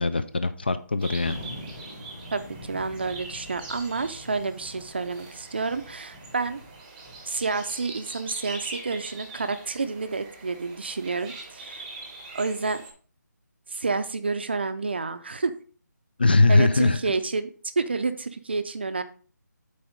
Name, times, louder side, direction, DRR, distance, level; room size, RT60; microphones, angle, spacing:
voice 1, 0.0-1.4 16.2-17.0, left 3 dB, 30° left, 12 dB, 0.4 m, -21 dB
sound 1, 1.0-12.9, right 3 dB, 10° right, 0.8 m, -43 dB
Thunder, 1.2-8.1, left 1 dB, 10° left, 1.2 m, -44 dB
voice 2, 2.3-6.6 7.2-11.8 12.3-12.8 13.7-15.5 16.5-17.5 17.8-19.0, right 4 dB, 35° right, 11 dB, 0.5 m, -29 dB
8.1 x 4.2 x 5.0 m, 0.41 s
figure-of-eight pair, 175°, 10 cm